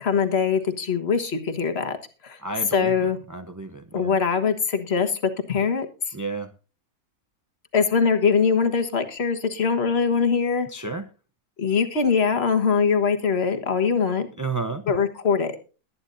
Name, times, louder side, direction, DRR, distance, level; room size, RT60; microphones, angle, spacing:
voice 1, 0.0-2.0 2.2-2.4 2.7-3.2 3.9-5.9 7.7-10.7 11.6-14.3 14.9-15.5, left 5 dB, 45° left, 7 dB, 1.6 m, -22 dB
voice 2, 2.4-4.1 6.1-6.5 10.7-11.1 14.4-14.8, right 3 dB, 25° right, 6 dB, 0.4 m, -32 dB
21.5 x 9.7 x 2.6 m, 0.34 s
omnidirectional pair, 1.5 m